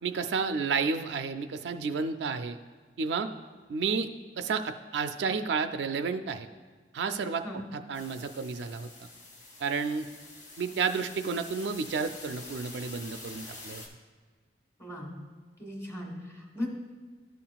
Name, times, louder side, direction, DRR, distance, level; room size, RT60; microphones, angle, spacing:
voice 1, 0.0-2.6 3.0-3.3 3.7-4.1 4.4-6.5 6.9-7.5 7.7-8.9 9.6-10.1 10.6-13.8, right 5 dB, 75° right, 8 dB, 0.4 m, -31 dB
sound 1, 7.9-13.9, left 2 dB, 65° left, 1.4 m, -47 dB
voice 2, 14.8-15.1 15.6-16.7, left 1 dB, 15° left, -1 dB, 1.3 m, -37 dB
12.5 x 5.7 x 2.3 m, 1.5 s
head